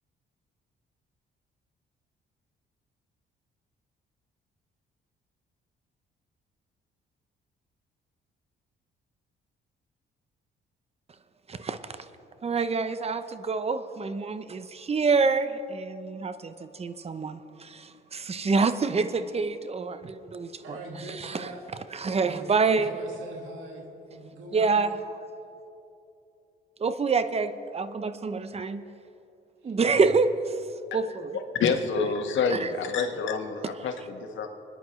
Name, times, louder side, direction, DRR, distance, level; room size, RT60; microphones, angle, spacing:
voice 1, 12.4-20.8 21.2-21.5 21.9-22.9 24.5-25.0 26.8-28.8 29.6-30.3 30.9-31.4 32.5-32.7, right 4 dB, 30° right, 11 dB, 0.8 m, -27 dB
voice 2, 20.6-21.7 22.1-24.8 29.6-30.0, right 2 dB, 85° right, 1 dB, 2.0 m, -42 dB
voice 3, 31.6-34.5, left 5 dB, 75° left, 4 dB, 1.5 m, -27 dB
25.5 x 10.5 x 3.2 m, 2.8 s
cardioid pair, 90°, 20 cm